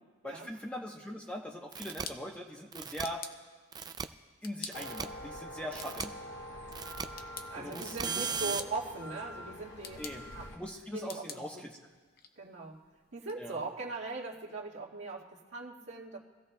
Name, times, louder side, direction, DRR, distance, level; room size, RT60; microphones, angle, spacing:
voice 1, 0.2-3.2 4.4-6.2 7.6-8.6 9.9-10.2 10.5-11.8 13.3-13.6, equal, 5° left, 0 dB, 1.0 m, -41 dB
sound 1, 1.6-13.4, left 6 dB, 45° left, 0.7 m, -50 dB
sound 2, 1.7-2.0 2.7-3.0 3.7-4.0 4.7-5.0 5.7-6.0 6.7-7.0 7.7-8.6, right 6 dB, 20° right, 0.3 m, -37 dB
sound 3, 4.7-10.6, equal, 60° left, 1.7 m, -45 dB
voice 2, 7.5-10.0 10.3-10.5 10.9-11.6 12.4-12.8 13.1-16.2, right 3 dB, 60° right, -4 dB, 1.9 m, -40 dB
25.0 x 16.0 x 2.3 m, 1.4 s
head